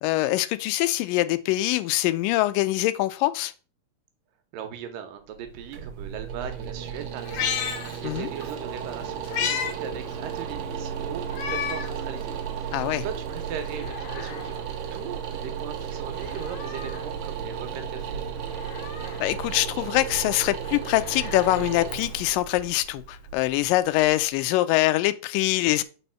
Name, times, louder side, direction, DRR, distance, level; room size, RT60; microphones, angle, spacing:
voice 1, 0.0-3.5 8.0-8.3 12.7-13.0 19.2-25.8, left 16 dB, 85° left, 2.2 m, -24 dB
voice 2, 4.5-18.2, right 8 dB, 85° right, 2.7 m, -39 dB
sound 1, 5.3-24.3, right 7 dB, 70° right, 1.7 m, -34 dB
Meow, 7.2-8.5 8.9-9.8 10.1-10.2 11.3-12.0 12.5-12.6 13.6-14.6 16.1-17.1 18.4-19.3 20.7-22.4 23.6-23.7, left 8 dB, 70° left, 2.1 m, -33 dB
5.4 x 4.2 x 5.5 m
omnidirectional pair, 3.8 m